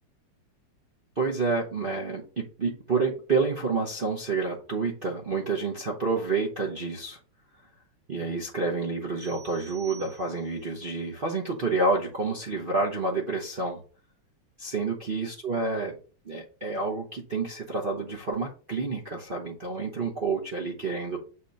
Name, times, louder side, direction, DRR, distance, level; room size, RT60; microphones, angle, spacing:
voice 1, 1.2-7.2 8.1-13.8 14.6-15.9 16.2-21.2, right 3 dB, 55° right, -3 dB, 0.5 m, -29 dB
sound 1, 9.2-10.7, right 7 dB, 85° right, 2.6 m, -50 dB
6.9 x 3.0 x 5.2 m, 0.38 s
omnidirectional pair, 2.4 m